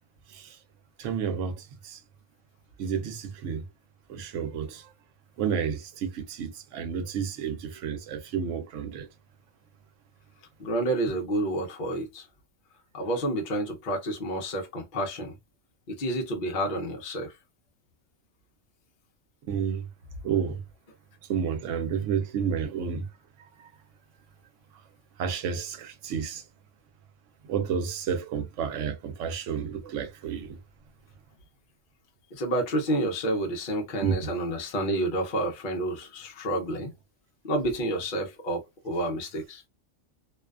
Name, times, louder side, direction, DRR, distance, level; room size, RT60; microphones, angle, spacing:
voice 1, 1.0-2.0 2.8-3.6 4.1-4.8 5.4-9.1 19.5-19.8 20.2-20.6 21.3-23.1 25.2-26.4 27.5-30.6 34.0-34.3, right 7 dB, 80° right, 0.9 m, -30 dB
voice 2, 10.6-12.3 12.9-15.3 15.9-17.3 32.3-36.9 37.4-39.6, right 1 dB, 50° left, 0.8 m, -29 dB
2.5 x 2.2 x 2.3 m
omnidirectional pair, 1.3 m